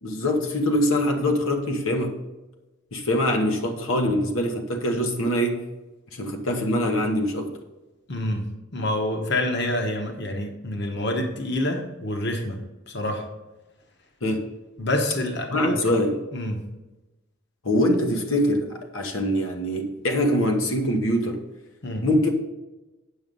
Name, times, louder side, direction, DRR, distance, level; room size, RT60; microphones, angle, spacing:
voice 1, 0.0-2.2 2.9-5.6 6.1-7.5 14.2-14.5 15.5-16.2 17.6-21.4 22.0-22.3, left 1 dB, 90° left, 3 dB, 1.2 m, -23 dB
voice 2, 8.1-8.4 8.7-13.2 14.8-15.8 16.3-16.6 21.8-22.0, left 1 dB, 55° left, 3 dB, 1.2 m, -27 dB
8.5 x 6.3 x 5.4 m, 1.1 s
head